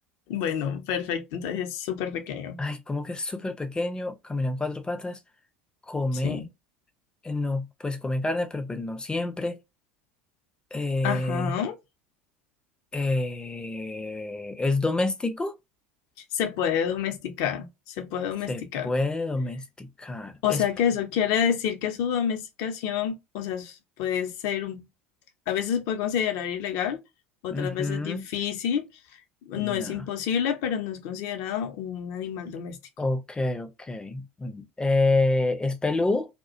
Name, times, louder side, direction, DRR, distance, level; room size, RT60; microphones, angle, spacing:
voice 1, 0.3-2.6 6.2-6.5 11.0-11.8 16.3-18.9 20.4-24.9 25.5-27.0 27.4-28.9 29.5-32.8, left 8 dB, 60° left, 0.6 m, -28 dB
voice 2, 2.6-5.2 5.9-6.4 7.2-9.6 10.7-11.5 12.9-15.5 18.5-20.6 27.5-28.3 29.6-30.0 33.0-36.3, left 2 dB, 15° left, 0.5 m, -28 dB
2.3 x 2.1 x 2.5 m
hypercardioid pair, 75°, 6 cm